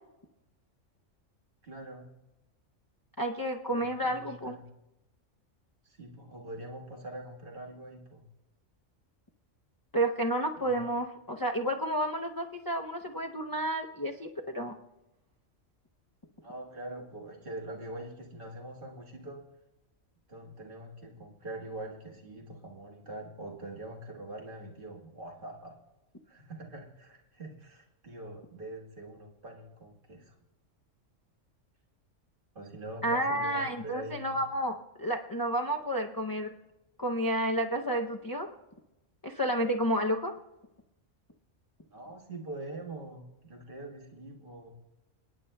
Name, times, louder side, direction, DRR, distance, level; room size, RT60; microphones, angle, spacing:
voice 1, 1.6-2.1 3.7-4.6 5.8-8.2 10.6-10.9 16.4-19.4 20.3-25.7 26.3-30.3 32.5-34.4 41.9-44.7, right 1 dB, 45° right, -1 dB, 1.7 m, -44 dB
voice 2, 3.2-4.6 9.9-14.7 33.0-36.5 37.0-38.5 39.2-40.3, right 1 dB, 35° left, 0 dB, 0.3 m, -31 dB
28.0 x 9.6 x 2.2 m, 0.98 s
omnidirectional pair, 1.3 m